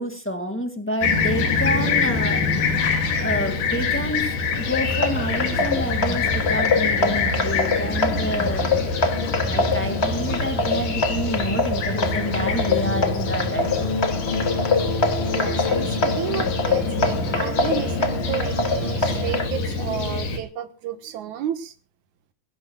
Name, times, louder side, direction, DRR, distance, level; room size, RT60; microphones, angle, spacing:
voice 1, 0.0-2.8 3.1-4.3 4.5-9.0 9.4-13.9, equal, 5° left, 5 dB, 1.3 m, -29 dB
Fixed-wing aircraft airplane, 1.0-20.4, left 3 dB, 80° left, 3.9 m, -25 dB
sound 1, 4.7-19.5, left 4 dB, 55° left, 0.7 m, -25 dB
voice 2, 15.3-21.7, right 10 dB, 70° right, 9 dB, 2.7 m, -31 dB
24.5 x 16.0 x 2.3 m, 0.34 s
omnidirectional pair, 3.5 m